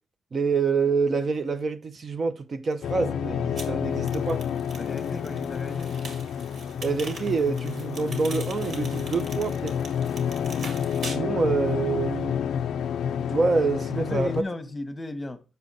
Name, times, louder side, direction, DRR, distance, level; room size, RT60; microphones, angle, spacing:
voice 1, 0.3-4.4 6.8-9.8 11.1-12.4 13.3-14.4, right 4 dB, 40° right, 0.5 m, -26 dB
sound 1, 2.8-14.4, left 8 dB, 70° left, 0.4 m, -29 dB
sound 2, 3.6-11.2, right 3 dB, 65° right, 1.7 m, -42 dB
voice 2, 4.7-6.0 14.0-15.4, left 2 dB, 20° left, 0.9 m, -35 dB
6.7 x 4.9 x 4.0 m
cardioid pair, 90°, 0 cm